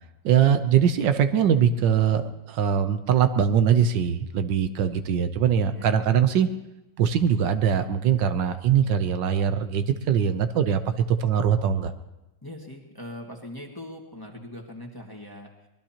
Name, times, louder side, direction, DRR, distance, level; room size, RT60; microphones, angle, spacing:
voice 1, 0.2-6.5 7.0-10.8 11.1-11.9, right 8 dB, 75° right, 9 dB, 1.5 m, -22 dB
voice 2, 5.5-5.9 12.4-15.7, left 1 dB, 10° left, 0 dB, 1.6 m, -41 dB
24.5 x 20.5 x 2.9 m, 0.98 s
omnidirectional pair, 2.0 m